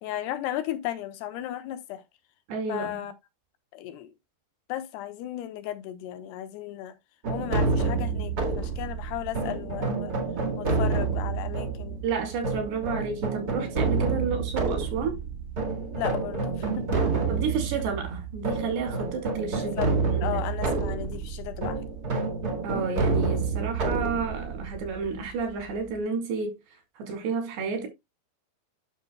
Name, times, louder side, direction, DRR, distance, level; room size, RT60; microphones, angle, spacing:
voice 1, 0.0-2.0 2.7-3.1 3.7-4.1 4.7-6.9 7.3-10.1 10.6-12.0 15.9-17.0 19.6-19.9 20.2-21.8, left 13 dB, 85° left, 3.0 m, -35 dB
voice 2, 2.5-3.0 12.0-15.2 17.3-20.4 22.6-26.6 27.0-27.9, right 5 dB, 85° right, 4.7 m, -31 dB
sound 1, 7.2-25.9, right 4 dB, 40° right, 1.4 m, -29 dB
10.5 x 6.7 x 2.2 m
omnidirectional pair, 4.7 m